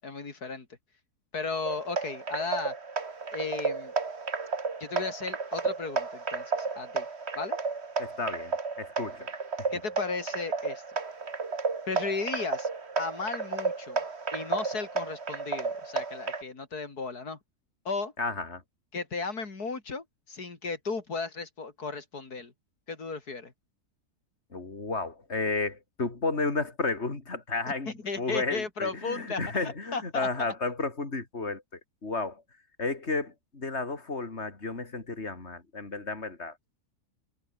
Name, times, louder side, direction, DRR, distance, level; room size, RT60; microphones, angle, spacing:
voice 1, 0.0-0.7 1.3-2.8 3.3-3.9 4.8-7.1 7.4-7.6 9.7-10.8 11.9-12.7 13.0-14.0 14.3-17.4 17.9-18.1 18.9-22.5 22.9-23.5 27.9-30.5, left 4 dB, 75° left, 3.8 m, -35 dB
sound 1, 1.6-16.4, right 4 dB, 45° right, 2.3 m, -33 dB
voice 2, 8.0-9.3 9.6-9.7 18.2-18.6 24.5-32.4 32.8-36.6, left 3 dB, 45° left, 3.7 m, -32 dB
omnidirectional pair, 1.7 m